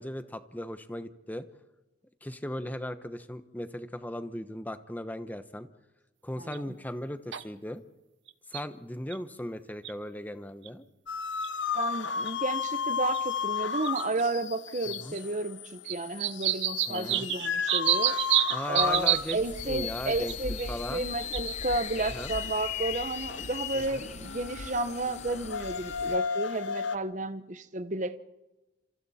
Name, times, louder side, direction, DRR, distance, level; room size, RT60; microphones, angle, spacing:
voice 1, 0.0-1.4 2.2-5.7 6.2-7.8 8.5-10.8 15.0-15.2 16.9-17.3 18.5-19.4 19.7-20.3 20.7-21.1 22.0-22.3 23.7-24.1, left 1 dB, 10° left, 1.0 m, -37 dB
voice 2, 6.4-6.7 11.7-18.2 18.7-28.2, right 2 dB, 40° right, 0.9 m, -32 dB
sound 1, 6.5-6.6 7.3-7.4 8.3-8.6 9.1-9.2 9.8-9.9 10.7-10.8 11.4-11.5 12.3-12.4 13.1-13.2 13.8-14.2 14.9-15.2 15.9-19.4 20.3-20.6 21.2-21.8 23.4-23.5, right 13 dB, 75° right, 1.0 m, -28 dB
sound 2, 11.1-27.0, left 7 dB, 85° left, 1.0 m, -34 dB
sound 3, 18.8-26.2, left 3 dB, 35° left, 1.0 m, -42 dB
30.0 x 27.5 x 4.3 m
head